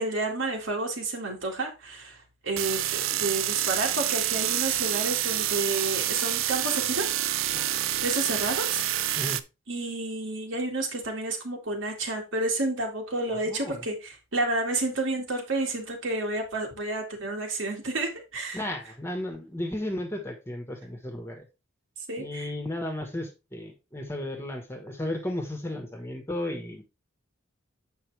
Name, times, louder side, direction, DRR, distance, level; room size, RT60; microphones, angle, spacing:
voice 1, 0.0-2.2 2.4-7.1 8.0-8.9 9.7-18.6 22.1-22.5, right 2 dB, 70° right, 2.1 m, -30 dB
sound 1, 2.6-9.4, right 12 dB, 85° right, 0.5 m, -27 dB
voice 2, 13.5-13.8 18.5-21.5 22.2-26.9, left 1 dB, 15° left, 1.5 m, -34 dB
7.9 x 5.6 x 3.4 m
head